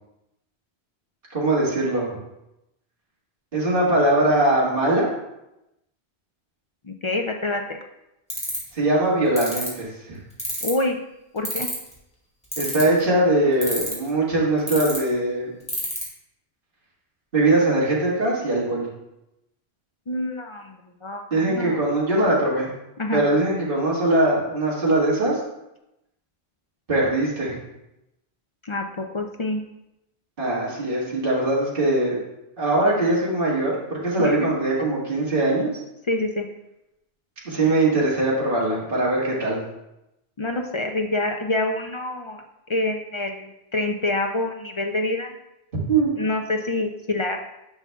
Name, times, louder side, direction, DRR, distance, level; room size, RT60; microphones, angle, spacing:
voice 1, 1.3-2.2 3.5-5.1 8.7-10.2 12.6-15.6 17.3-18.9 21.3-22.7 23.1-25.4 26.9-27.6 30.4-32.2 32.6-35.7 37.5-39.6 45.9-46.2, right 2 dB, 55° right, -6 dB, 1.9 m, -21 dB
voice 2, 6.8-7.6 10.6-11.0 11.3-11.7 20.1-21.8 23.0-23.2 28.6-29.6 34.2-34.5 36.1-36.5 40.4-42.4 42.7-45.4 46.1-47.4, left 2 dB, 50° left, 3 dB, 0.3 m, -26 dB
sound 1, 8.3-8.7 9.4-9.7 10.4-10.8 11.4-11.9 12.5-13.0 13.6-14.1 14.7-15.0 15.7-16.0, equal, 5° left, 2.1 m, -27 dB
9.7 x 5.9 x 2.3 m, 0.88 s
omnidirectional pair, 1.1 m